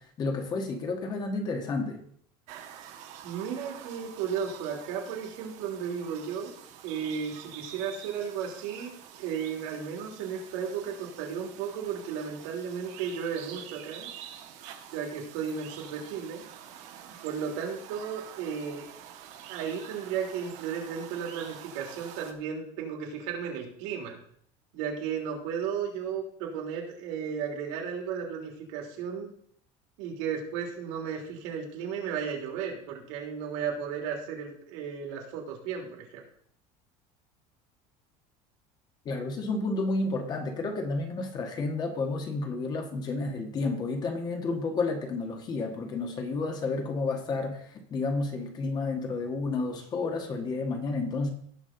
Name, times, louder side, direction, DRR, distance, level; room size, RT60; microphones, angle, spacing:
voice 1, 0.0-2.0 39.0-51.3, left 3 dB, 30° left, 4 dB, 1.4 m, -31 dB
sound 1, 2.5-22.3, right 9 dB, 50° right, 1.4 m, -47 dB
voice 2, 3.2-6.5 6.8-14.1 14.9-16.4 17.2-18.9 19.5-24.2 24.7-29.3 30.0-36.2, right 7 dB, 80° right, 0 dB, 3.3 m, -34 dB
17.5 x 6.3 x 3.8 m, 0.63 s
cardioid pair, 170°, 15 cm